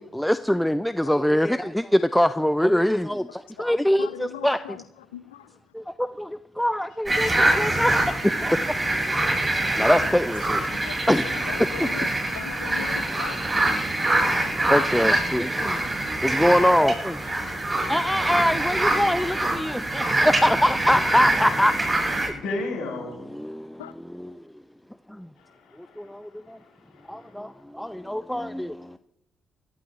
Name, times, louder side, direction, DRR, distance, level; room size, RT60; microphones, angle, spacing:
voice 1, 0.1-4.8 5.7-8.7 9.8-10.6 11.1-11.3 11.8-11.9 14.7-15.8 16.2-17.2 17.9-21.8 22.3-22.4 23.3-24.4 25.1-25.3 26.0-26.6 27.1-29.0, equal, 5° left, 12 dB, 0.6 m, -24 dB
voice 2, 4.0-4.8 5.1-5.4 10.8-12.1 12.3-14.1 23.8-23.9, left 13 dB, 90° left, 16 dB, 0.5 m, -39 dB
sound 1, 7.1-22.3, right 1 dB, 25° right, 7.6 m, -24 dB
voice 3, 22.3-23.2 25.4-26.1 26.5-26.6 26.9-27.4, left 2 dB, 70° left, -3 dB, 7.2 m, -34 dB
22.5 x 14.5 x 3.0 m, 0.82 s
hypercardioid pair, 40°, 0 cm